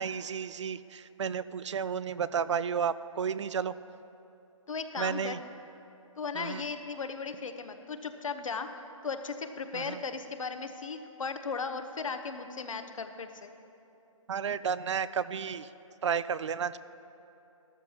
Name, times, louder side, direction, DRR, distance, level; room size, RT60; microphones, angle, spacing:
voice 1, 0.0-3.7 5.0-5.4 6.4-6.6 9.7-10.0 14.3-15.7 16.0-16.8, right 7 dB, 60° right, 16 dB, 0.4 m, -32 dB
voice 2, 4.7-5.3 6.2-8.7 9.0-13.5, left 5 dB, 75° left, 8 dB, 0.9 m, -36 dB
13.0 x 13.0 x 2.9 m, 2.9 s
hypercardioid pair, 160°, 17 cm